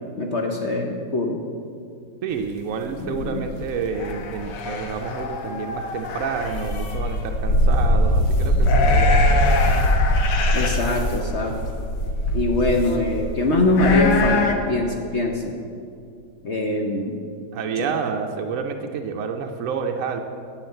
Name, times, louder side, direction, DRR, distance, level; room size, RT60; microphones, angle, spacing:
voice 1, 0.2-1.4 3.0-3.4 10.5-11.5 12.3-15.6 16.4-17.2 17.8-17.9, left 2 dB, 50° left, 2 dB, 0.9 m, -23 dB
voice 2, 2.2-10.0 17.5-20.2, right 5 dB, 65° right, 3 dB, 0.8 m, -29 dB
sound 1, 2.9-14.5, left 1 dB, 75° left, 1.6 m, -21 dB
9.0 x 7.1 x 7.8 m, 2.4 s
omnidirectional pair, 1.9 m